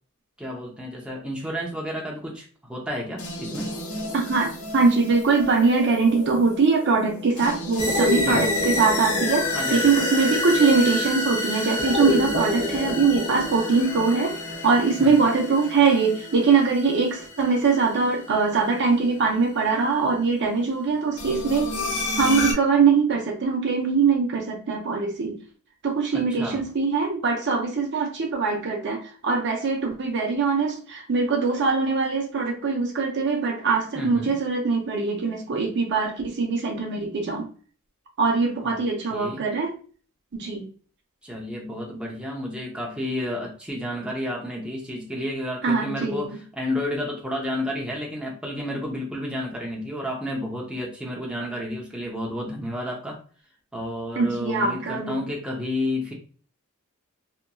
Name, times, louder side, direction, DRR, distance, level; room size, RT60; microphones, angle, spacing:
voice 1, 0.4-3.7 8.2-8.5 9.5-9.9 15.0-15.2 26.1-26.6 33.9-34.4 38.6-38.8 39.1-39.4 41.2-53.2 53.7-56.1, left 1 dB, 5° right, -2 dB, 0.6 m, -31 dB
sound 1, 3.2-19.3 21.2-22.5, left 1 dB, 85° left, 0.8 m, -29 dB
voice 2, 4.1-14.4 14.6-21.7 22.2-25.4 25.8-37.5 38.2-39.7 40.3-40.6 45.6-46.3 54.2-55.2, right 4 dB, 55° right, 2 dB, 0.6 m, -22 dB
2.8 x 2.5 x 2.2 m, 0.40 s
head